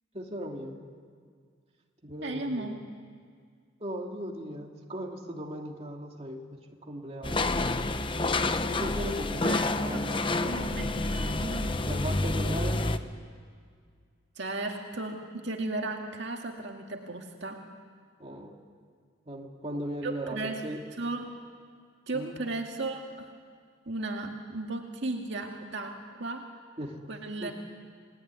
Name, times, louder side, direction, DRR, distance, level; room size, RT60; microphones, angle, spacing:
voice 1, 0.1-0.8 2.0-2.8 3.8-7.5 8.6-10.3 10.6-10.8 11.8-12.9 18.2-18.5 19.2-20.4 20.6-20.8 22.1-22.3 26.8-27.0 27.4-27.5, equal, 30° right, 1 dB, 2.6 m, -38 dB
voice 2, 2.2-2.8 9.4-9.7 9.9-10.1 10.4-11.8 14.4-17.6 20.0-20.6 21.0-21.3 22.1-23.3 23.9-26.5 27.1-27.5, right 2 dB, 55° right, 2 dB, 2.1 m, -35 dB
sound 1, 7.2-13.0, left 2 dB, 25° left, 0.9 m, -28 dB
29.5 x 20.0 x 9.6 m, 2.1 s
head